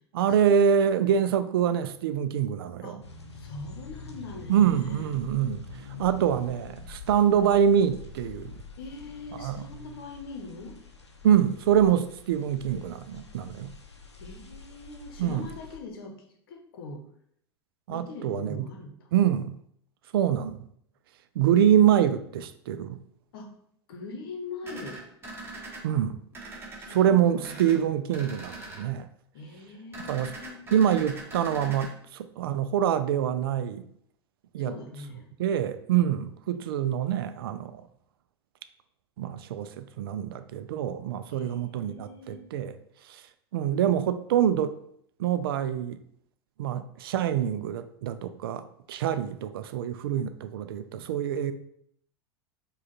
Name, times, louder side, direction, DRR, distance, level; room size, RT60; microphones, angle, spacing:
voice 1, 0.1-2.9 4.5-5.6 6.0-8.6 9.3-9.7 11.2-13.7 15.2-15.5 17.9-18.7 19.1-19.6 20.1-20.6 21.4-23.0 25.8-26.2 26.9-29.1 30.1-30.3 30.7-33.9 34.5-34.7 35.4-37.8 39.2-42.8 43.0-43.2 43.5-44.8 45.2-46.0 46.6-51.5, right 9 dB, 60° right, 0.4 m, -25 dB
sound 1, 3.0-15.8, left 4 dB, 85° left, 0.6 m, -45 dB
voice 2, 3.3-5.2 8.8-10.8 14.2-17.0 17.9-19.1 23.3-23.5 23.9-25.0 26.8-27.8 29.3-30.6 34.6-35.3 41.3-42.4, left 3 dB, 60° left, 0.9 m, -42 dB
sound 2, 24.6-25.8 26.3-27.0 27.4-27.8 28.1-28.8 29.9-31.9, right 2 dB, 15° right, 1.3 m, -41 dB
5.0 x 2.4 x 3.9 m
figure-of-eight pair, 85°, 14 cm